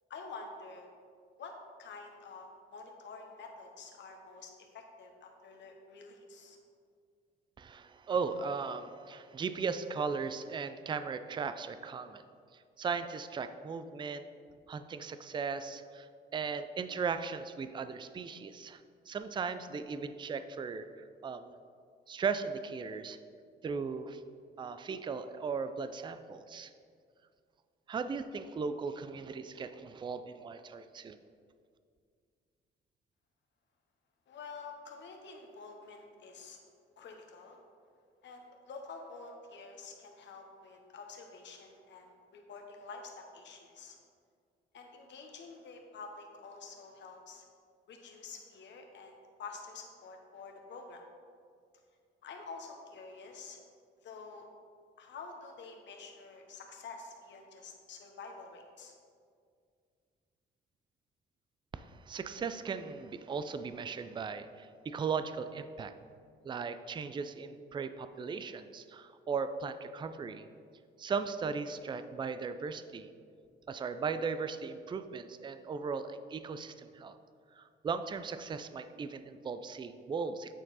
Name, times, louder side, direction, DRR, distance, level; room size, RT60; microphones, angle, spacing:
voice 1, 0.1-0.9 1.4-1.5 1.8-6.6 34.3-36.6 37.0-37.6 38.2-44.0 44.7-47.4 47.9-51.0 52.2-53.6 54.0-54.5 55.0-58.9, left 4 dB, 65° left, 3 dB, 1.1 m, -48 dB
voice 2, 7.6-12.2 12.5-14.3 14.7-21.5 22.1-23.2 23.6-24.2 24.6-26.7 27.9-31.2 61.7-65.9 66.4-70.4 71.0-73.1 73.7-77.1 77.6-80.5, right 5 dB, 25° right, 11 dB, 0.4 m, -37 dB
8.9 x 4.4 x 4.1 m, 2.2 s
cardioid pair, 90°, 20 cm